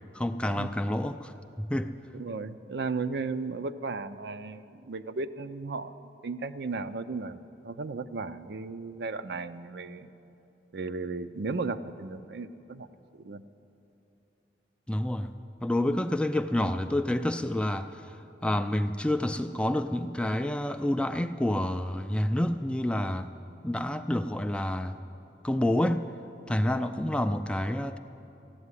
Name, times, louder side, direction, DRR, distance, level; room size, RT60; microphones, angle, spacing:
voice 1, 0.1-1.3 1.6-1.9 14.9-15.3 15.6-18.1 18.4-23.3 23.6-25.0 25.4-26.1 26.5-28.0, left 1 dB, 5° left, 8 dB, 0.3 m, -28 dB
voice 2, 2.1-5.9 6.2-10.1 10.7-12.9 13.2-13.4 26.8-27.0, right 4 dB, 60° right, 11 dB, 0.5 m, -35 dB
14.5 x 8.4 x 9.7 m, 2.9 s
head